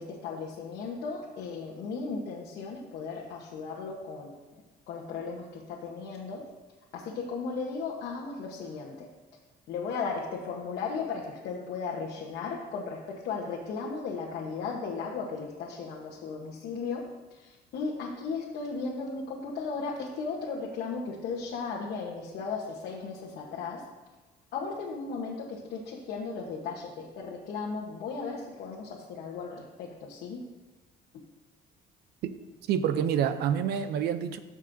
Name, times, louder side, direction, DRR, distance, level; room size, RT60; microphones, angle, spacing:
voice 1, 0.0-4.6 4.9-6.4 6.9-9.1 9.7-23.9 24.5-30.4, left 4 dB, 80° left, -4 dB, 1.2 m, -36 dB
voice 2, 32.7-34.4, right 8 dB, 75° right, 11 dB, 0.6 m, -27 dB
13.5 x 5.3 x 2.7 m, 1.2 s
cardioid pair, 110°, 17 cm